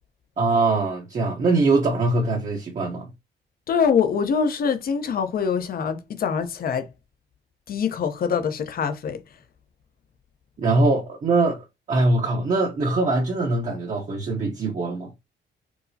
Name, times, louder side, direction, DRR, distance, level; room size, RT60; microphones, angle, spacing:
voice 1, 0.4-3.1 10.6-11.6 11.9-15.1, right 3 dB, 40° right, 0.8 m, -22 dB
voice 2, 3.7-6.9 7.7-9.2, left 6 dB, 50° left, 0.7 m, -24 dB
4.6 x 2.0 x 2.7 m
cardioid pair, 110°, 19 cm